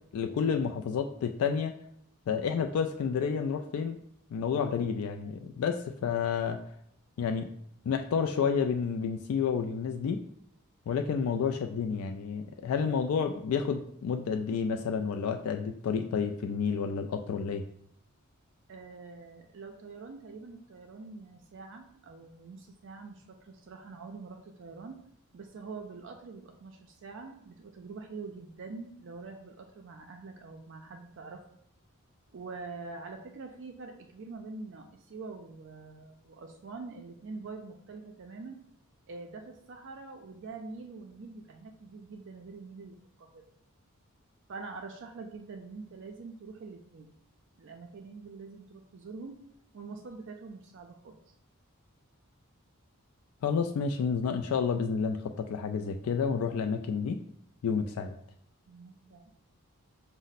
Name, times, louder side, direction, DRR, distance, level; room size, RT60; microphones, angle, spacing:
voice 1, 0.1-1.7 2.3-4.0 4.3-6.6 7.2-7.5 7.8-10.2 10.9-17.6 53.4-57.2 57.6-58.1, left 6 dB, 70° left, 5 dB, 0.3 m, -30 dB
voice 2, 18.7-25.0 25.3-31.4 32.3-38.6 39.1-43.4 44.5-47.1 47.6-49.3 49.7-51.2 58.7-59.3, right 4 dB, 55° right, 3 dB, 0.4 m, -45 dB
5.2 x 2.0 x 4.0 m, 0.70 s
head